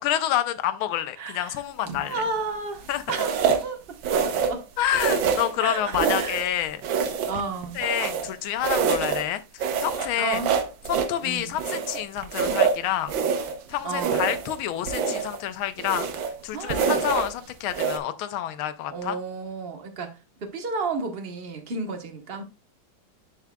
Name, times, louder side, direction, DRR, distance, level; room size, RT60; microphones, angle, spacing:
voice 1, 0.0-2.2 2.9-3.0 4.8-7.1 7.7-9.4 9.8-10.4 10.9-13.1 13.7-16.1 16.4-19.2, left 11 dB, 90° left, 1.5 m, -28 dB
voice 2, 1.2-1.6 2.0-4.6 5.6-6.4 7.3-7.8 10.2-10.5 11.2-11.6 13.8-14.3 16.5-17.1 18.9-22.4, right 4 dB, 35° right, 1.1 m, -32 dB
sound 1, 1.8-2.2 3.1-3.7 4.0-4.6 4.9-5.6 5.9-6.5 6.8-8.3 8.6-9.3 9.6-11.2 11.6-13.6 13.9-14.6 14.9-15.4 15.8-16.4 16.7-17.3 17.7-18.0, right 6 dB, 75° right, 1.5 m, -26 dB
11.0 x 4.7 x 2.2 m
omnidirectional pair, 2.2 m